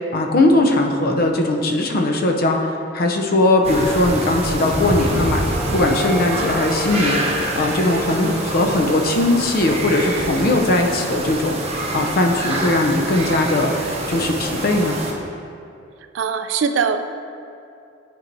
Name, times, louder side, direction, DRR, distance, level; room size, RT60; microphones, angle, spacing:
voice 1, 0.1-5.4 5.7-7.2 7.5-15.0, left 2 dB, 50° left, 3 dB, 0.6 m, -19 dB
sound 1, 3.6-15.1, right 1 dB, 35° right, 0.7 m, -26 dB
sound 2, 4.2-11.0, equal, 5° left, 0.3 m, -33 dB
voice 2, 16.1-17.0, right 6 dB, 75° right, 9 dB, 0.3 m, -21 dB
9.2 x 4.5 x 2.6 m, 2.5 s
head